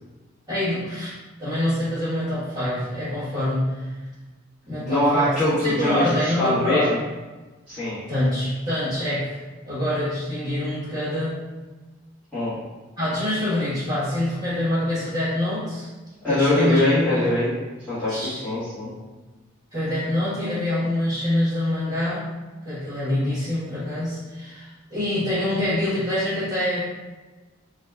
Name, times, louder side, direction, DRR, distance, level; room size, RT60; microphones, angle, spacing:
voice 1, 0.5-1.1 1.4-3.9 4.7-5.3 5.6-6.9 8.1-9.4 9.7-11.4 13.0-15.9 16.2-16.8 17.1-17.3 18.1-18.4 19.7-22.3 22.6-26.8, left 1 dB, 20° right, -13 dB, 1.4 m, -25 dB
voice 2, 4.8-7.0 7.7-8.0 12.3-12.5 16.2-17.5 17.9-18.9, left 1 dB, 5° left, -17 dB, 1.4 m, -22 dB
4.1 x 2.3 x 3.3 m, 1.2 s
head